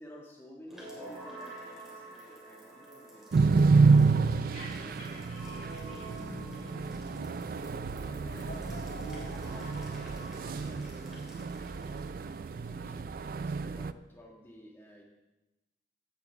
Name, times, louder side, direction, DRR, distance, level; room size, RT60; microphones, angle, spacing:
voice 1, 0.0-3.7 4.2-5.4 8.3-9.1 9.5-11.5 11.9-15.0, equal, 15° left, -2 dB, 2.0 m, -53 dB
sound 1, 0.6-12.5, right 1 dB, ahead, 3.1 m, -48 dB
sound 2, 3.3-13.9, right 4 dB, 50° right, 0.3 m, -29 dB
voice 2, 4.2-7.6, left 1 dB, 45° left, -3 dB, 3.6 m, -52 dB
sound 3, 7.9-11.4, left 1 dB, 65° left, 2.7 m, -50 dB
16.0 x 8.6 x 3.7 m, 1.0 s
head